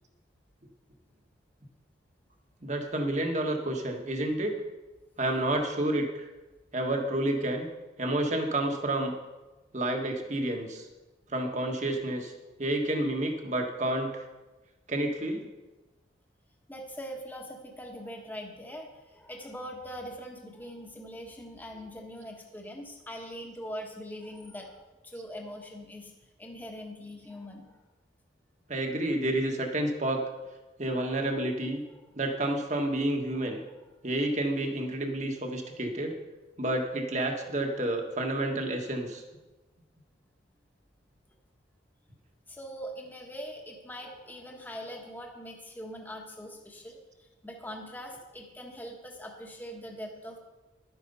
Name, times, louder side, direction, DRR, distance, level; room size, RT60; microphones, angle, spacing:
voice 1, 2.6-4.5 5.2-6.3 6.7-7.7 8.0-9.1 9.7-10.9 11.3-12.3 12.6-14.2 14.9-15.5 28.7-30.3 30.8-31.8 32.2-33.6 34.0-36.1 36.6-39.2, right 1 dB, 40° right, 3 dB, 1.5 m, -29 dB
voice 2, 16.7-26.1 26.4-27.8 32.0-32.2 33.4-33.9 42.5-50.4, equal, 10° left, 1 dB, 1.4 m, -42 dB
12.0 x 9.3 x 5.5 m, 1.1 s
head